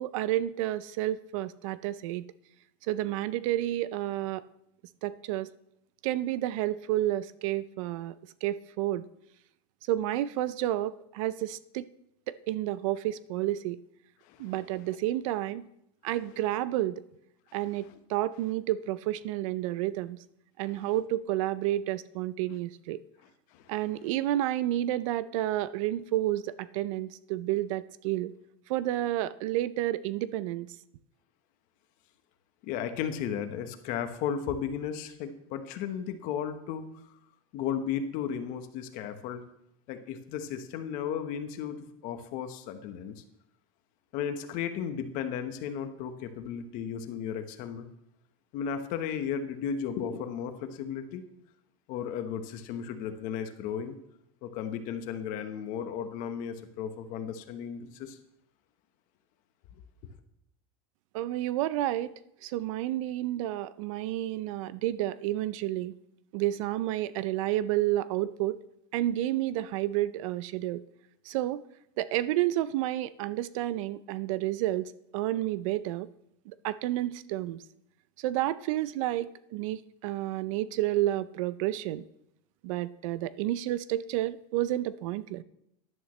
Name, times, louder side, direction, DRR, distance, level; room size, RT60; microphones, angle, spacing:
voice 1, 0.0-2.2 2.9-4.4 5.0-5.5 6.0-8.1 8.4-9.0 9.9-11.8 12.3-13.8 14.4-15.7 16.0-17.0 17.5-20.2 20.6-23.0 23.7-28.3 28.7-30.7 61.1-62.1 62.4-65.9 66.3-68.6 68.9-70.8 71.3-71.6 72.0-76.1 76.5-77.6 78.2-82.0 82.6-85.4, right 14 dB, 70° right, 17 dB, 0.5 m, -30 dB
voice 2, 14.2-14.5 20.6-20.9 23.5-23.7 32.6-36.9 37.5-39.4 39.9-43.2 44.1-47.9 48.5-51.2 51.9-54.0 54.4-58.2 59.7-59.8, left 8 dB, 50° left, 8 dB, 1.2 m, -35 dB
12.5 x 11.0 x 3.2 m, 0.79 s
supercardioid pair, 145°, 18 cm